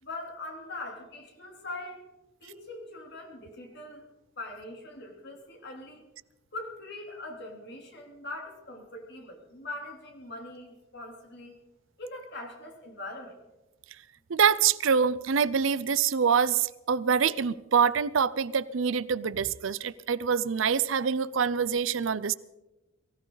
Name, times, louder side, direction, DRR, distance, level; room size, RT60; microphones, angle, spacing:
voice 1, 0.0-2.1 2.4-4.1 4.4-6.0 6.5-11.5 12.0-13.4, left 2 dB, 55° left, 3.4 m, -42 dB
voice 2, 14.3-22.3, right 6 dB, 70° right, 0.5 m, -25 dB
23.0 x 15.5 x 4.0 m
head